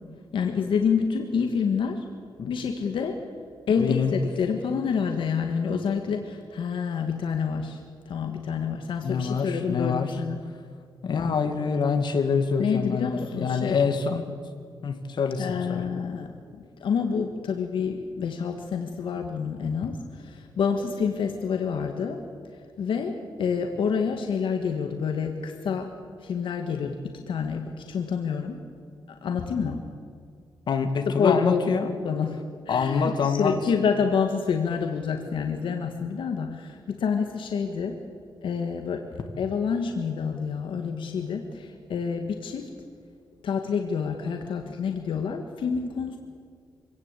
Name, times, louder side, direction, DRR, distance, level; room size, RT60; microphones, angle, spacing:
voice 1, 0.3-2.0 2.5-3.2 3.7-7.8 8.1-10.4 12.6-13.8 15.4-22.2 22.8-25.9 26.2-28.6 29.2-29.8 31.1-31.7 32.0-32.4 32.7-38.0 38.4-39.1 39.4-42.7 43.4-46.2, left 6 dB, 80° left, 4 dB, 1.7 m, -28 dB
voice 2, 3.8-4.1 9.0-10.1 11.0-14.2 14.8-15.9 30.7-31.9 32.7-33.5, left 5 dB, 60° left, 6 dB, 2.2 m, -25 dB
25.5 x 17.0 x 8.4 m, 2.2 s
wide cardioid pair, 165°, 9 cm